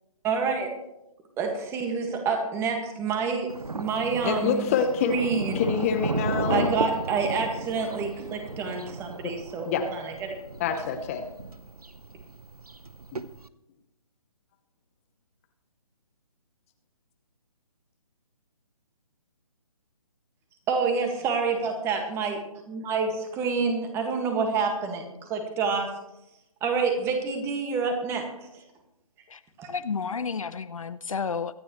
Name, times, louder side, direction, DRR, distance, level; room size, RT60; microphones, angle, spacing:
voice 1, 0.2-0.7 1.4-3.5 3.7-4.7 5.0-5.6 6.5-10.3 20.7-22.4 22.7-25.0 25.3-25.9 26.6-28.2 29.6-29.7, right 5 dB, 15° right, 4 dB, 1.8 m, -27 dB
Thunder, 3.5-13.5, right 3 dB, 85° right, 0.8 m, -34 dB
voice 2, 4.2-5.2 5.5-6.7 9.2-9.3 9.7-9.8 10.6-11.2 13.1-13.2, left 7 dB, 25° left, 6 dB, 0.9 m, -26 dB
voice 3, 29.7-31.5, left 5 dB, 65° left, 13 dB, 0.7 m, -31 dB
24.0 x 10.0 x 3.1 m, 0.88 s
figure-of-eight pair, 140°, 19 cm